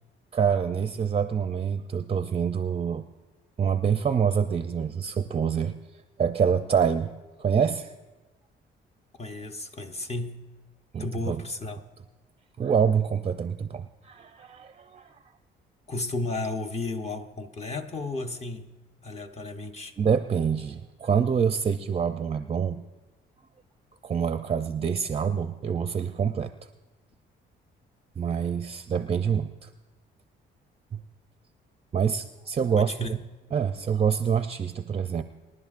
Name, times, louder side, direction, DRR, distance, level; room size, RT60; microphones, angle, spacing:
voice 1, 0.3-3.1 3.6-5.7 6.2-7.1 7.4-7.9 10.9-11.4 12.6-15.2 20.0-22.8 24.0-26.5 28.2-29.7 30.9-31.0 31.9-33.2 33.5-35.2, right 7 dB, 30° right, 9 dB, 0.5 m, -26 dB
voice 2, 9.2-10.5 11.0-11.8 15.9-18.7 19.0-19.9 32.8-33.3, left 2 dB, 30° left, 5 dB, 0.9 m, -33 dB
26.0 x 11.0 x 2.5 m, 1.1 s
cardioid pair, 90°, 20 cm